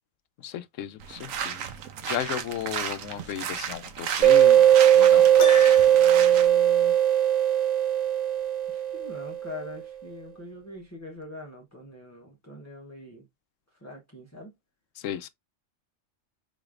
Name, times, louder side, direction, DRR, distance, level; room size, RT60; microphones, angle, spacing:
voice 1, 0.4-1.7 2.0-4.7 4.9-5.3 15.0-15.3, left 10 dB, 75° left, 1.0 m, -34 dB
sound 1, 1.0-6.5, right 7 dB, 90° right, 1.2 m, -34 dB
sound 2, 4.2-9.5, right 11 dB, 40° right, 0.7 m, -19 dB
Piano, 5.4-6.2, left 5 dB, 45° left, 1.1 m, -32 dB
voice 2, 6.0-6.9 8.7-13.2 13.8-14.5, left 2 dB, 15° left, 0.9 m, -43 dB
5.0 x 4.1 x 2.5 m
omnidirectional pair, 1.3 m